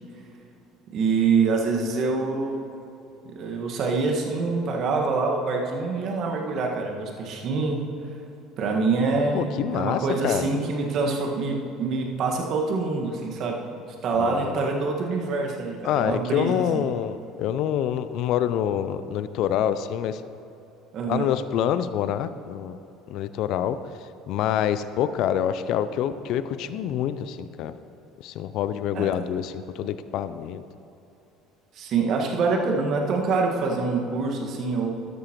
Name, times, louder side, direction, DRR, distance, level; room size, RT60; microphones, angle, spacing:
voice 1, 0.9-2.6 3.2-7.9 8.6-13.6 14.0-16.9 20.9-21.3 28.9-29.1 31.7-34.9, right 4 dB, 55° right, 1 dB, 1.6 m, -25 dB
voice 2, 9.3-10.6 14.2-14.7 15.8-20.2 21.1-22.8 23.1-23.8 24.3-27.7 28.2-30.6, left 10 dB, 60° left, 13 dB, 0.4 m, -26 dB
12.5 x 11.5 x 3.0 m, 2.9 s
hypercardioid pair, 65°, 0 cm